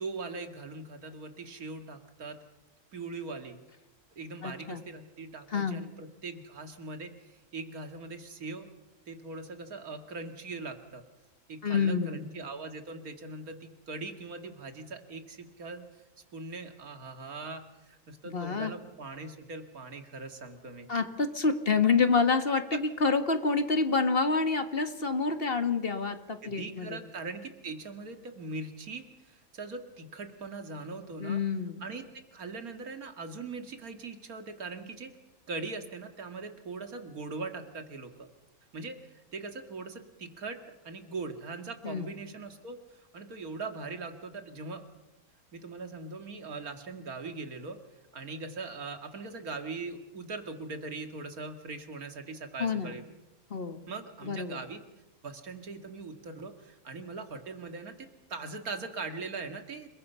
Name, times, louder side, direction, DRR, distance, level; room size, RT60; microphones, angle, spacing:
voice 1, 0.0-2.4 2.9-3.6 4.2-8.7 9.1-11.0 11.5-15.9 16.3-20.9 26.4-31.4 31.8-32.1 32.3-35.1 35.5-38.3 38.7-44.8 45.5-47.8 48.1-53.0 53.9-54.8 55.2-58.0 58.3-59.9, right 3 dB, 80° right, 6 dB, 2.5 m, -41 dB
voice 2, 4.4-4.8 5.5-5.8 11.6-12.3 18.2-18.7 20.9-27.0 31.2-31.8 41.8-42.1 52.6-53.0 53.5-53.8 54.2-54.6, left 4 dB, 40° left, 8 dB, 1.9 m, -28 dB
29.5 x 21.0 x 5.7 m, 1.0 s
omnidirectional pair, 1.5 m